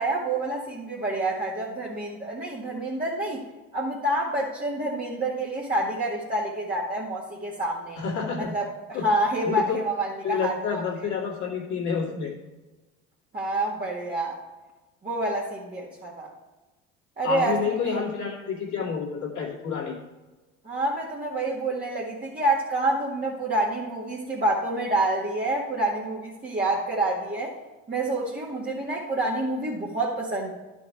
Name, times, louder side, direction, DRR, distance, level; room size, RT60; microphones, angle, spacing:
voice 1, 0.0-3.4 3.7-8.0 8.5-10.8 13.3-14.4 15.0-16.3 17.2-17.6 20.6-27.6 27.9-30.5, right 2 dB, 25° right, -6 dB, 2.0 m, -27 dB
voice 2, 8.0-8.5 8.9-9.1 9.4-9.8 10.2-12.3 17.2-20.0, left 5 dB, 50° left, -2 dB, 2.4 m, -29 dB
11.5 x 5.4 x 4.7 m, 1.1 s
hypercardioid pair, 70°, 37 cm